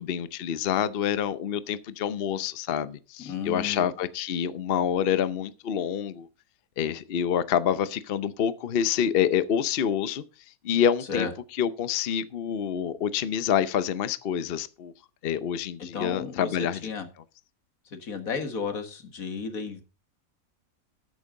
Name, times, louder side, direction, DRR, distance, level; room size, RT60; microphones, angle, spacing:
voice 1, 0.0-6.3 6.8-10.2 10.6-11.3 11.6-14.9 15.2-16.9, left 8 dB, 50° left, 0.8 m, -27 dB
voice 2, 3.2-3.9 11.1-11.3 15.8-17.1 17.9-19.8, left 5 dB, 85° left, 2.1 m, -33 dB
12.5 x 9.1 x 3.8 m
omnidirectional pair, 1.4 m